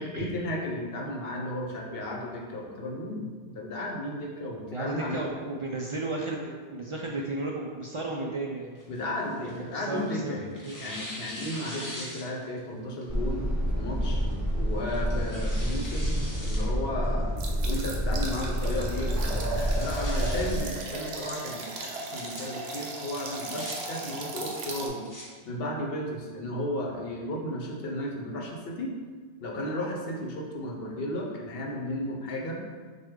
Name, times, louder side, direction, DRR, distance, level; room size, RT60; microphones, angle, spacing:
voice 1, 0.0-5.3 8.9-13.5 13.7-14.2 14.5-17.3 17.6-25.0 25.4-29.0 29.4-32.6, left 1 dB, 70° left, -1 dB, 1.0 m, -34 dB
voice 2, 4.7-8.7 9.4-10.9, right 2 dB, 60° right, -2 dB, 0.3 m, -34 dB
Tearing, 8.7-10.1 10.6-12.6 13.0-13.1 14.0-14.3 14.9-16.7 17.0-17.1 17.7-18.1 18.5-18.6 18.9-19.0 19.4-20.6 21.9-22.4 23.2-23.7 24.7-25.2, left 1 dB, 20° left, 0.9 m, -42 dB
sound 1, 13.1-20.6, equal, 20° right, 0.9 m, -28 dB
sound 2, 17.4-24.9, right 3 dB, 85° right, 0.9 m, -37 dB
6.3 x 2.2 x 3.6 m, 1.5 s
omnidirectional pair, 1.0 m